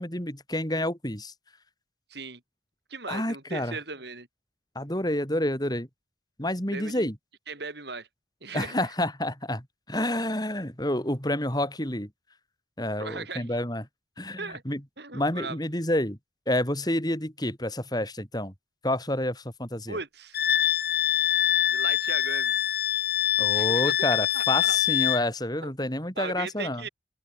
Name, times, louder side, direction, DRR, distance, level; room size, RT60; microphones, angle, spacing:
voice 1, 0.0-1.3 3.1-3.8 4.7-5.9 6.4-7.2 8.5-12.1 12.8-13.8 14.2-14.8 15.1-16.2 16.5-18.5 18.8-20.0 23.4-26.8, left 1 dB, 20° left, 6.2 m, -29 dB
voice 2, 2.1-2.4 2.9-4.3 6.7-7.1 7.5-8.1 8.4-8.8 13.0-13.6 14.4-14.6 15.0-15.6 19.9-20.4 21.7-22.5 23.5-24.8 25.6-25.7 26.2-26.9, right 3 dB, 60° right, 4.4 m, -37 dB
Wind instrument woodwind instrument, 20.3-25.2, left 11 dB, 50° left, 1.5 m, -24 dB
open air
head